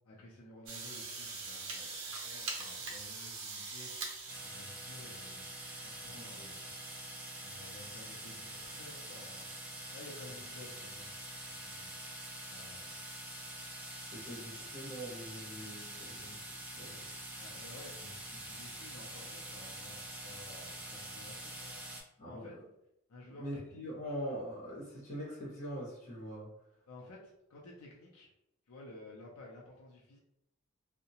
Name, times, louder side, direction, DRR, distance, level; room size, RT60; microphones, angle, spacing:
voice 1, 0.0-3.9 4.4-5.5 5.8-6.7 7.4-9.5 9.9-11.1 11.5-11.9 12.5-13.0 14.3-14.4 17.3-21.7 22.3-22.6 23.1-23.8 26.9-28.3 28.7-30.2, left 2 dB, 80° left, -3 dB, 0.5 m, -53 dB
sound 1, 0.7-5.0, right 3 dB, 60° right, 0.6 m, -42 dB
sound 2, 4.3-22.0, right 1 dB, 5° right, 0.3 m, -45 dB
voice 2, 6.1-6.5 14.1-16.3 16.7-17.0 22.2-22.5 23.4-26.5, equal, 35° left, -6 dB, 1.2 m, -43 dB
2.7 x 2.1 x 2.8 m, 0.83 s
head